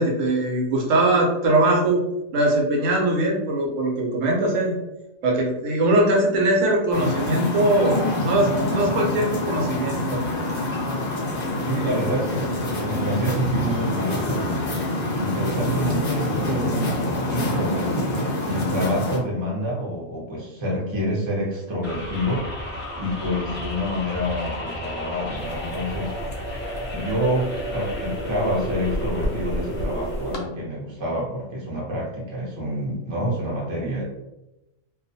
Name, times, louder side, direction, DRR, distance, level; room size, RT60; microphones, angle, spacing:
voice 1, 0.0-2.0 2.3-4.7 5.2-10.6 11.8-12.3, right 1 dB, 75° right, -1 dB, 1.0 m, -21 dB
sound 1, 6.9-19.2, left 1 dB, 55° left, 0.7 m, -26 dB
voice 2, 11.6-14.6 15.2-17.0 17.3-22.5 23.0-26.1 26.9-34.0, equal, 30° right, -4 dB, 0.6 m, -27 dB
sound 2, 21.8-30.4, equal, 10° left, 0.6 m, -32 dB
sound 3, 25.4-30.4, left 1 dB, 80° left, 1.0 m, -33 dB
2.4 x 2.3 x 2.6 m, 0.97 s
omnidirectional pair, 1.4 m